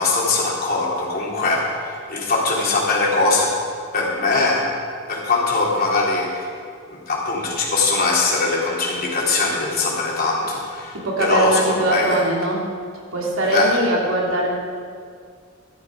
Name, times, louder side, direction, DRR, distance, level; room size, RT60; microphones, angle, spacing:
voice 1, 0.0-3.5 3.9-4.7 5.1-6.5 6.9-12.2 13.5-13.8, left 3 dB, 50° left, -4 dB, 3.4 m, -21 dB
voice 2, 11.0-12.6 13.1-14.5, right 2 dB, 85° right, -3 dB, 3.3 m, -21 dB
16.0 x 13.0 x 4.8 m, 2.1 s
head